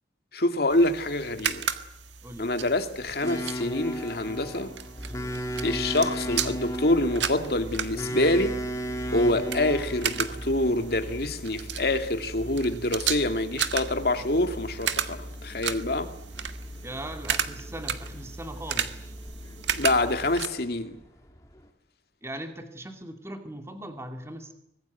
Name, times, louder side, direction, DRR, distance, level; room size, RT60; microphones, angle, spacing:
voice 1, 0.3-1.7 2.4-4.7 5.6-8.6 9.1-16.1 19.7-21.0, left 1 dB, 60° left, 2.4 m, -26 dB
sound 1, 0.7-20.5, right 8 dB, 85° right, 1.7 m, -35 dB
sound 2, 3.2-21.7, equal, 20° left, 2.3 m, -37 dB
sound 3, 5.0-20.4, equal, 35° left, 2.6 m, -42 dB
voice 2, 16.8-19.1 22.2-24.5, right 1 dB, 15° right, 2.3 m, -39 dB
24.5 x 20.5 x 9.3 m
head